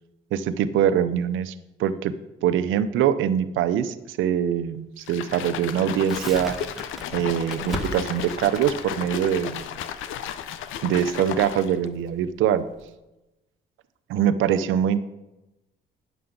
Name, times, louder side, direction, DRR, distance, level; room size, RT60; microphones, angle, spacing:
voice 1, 0.3-1.5 1.8-2.1 2.4-6.6 7.1-9.7 10.8-12.7 14.1-15.0, right 9 dB, 80° right, 12 dB, 0.6 m, -23 dB
sound 1, 5.0-11.9, left 9 dB, 85° left, 0.6 m, -34 dB
Crackle, 6.1-12.9, right 1 dB, ahead, 1.2 m, -38 dB
9.3 x 6.8 x 3.8 m, 0.99 s
cardioid pair, 90°, 20 cm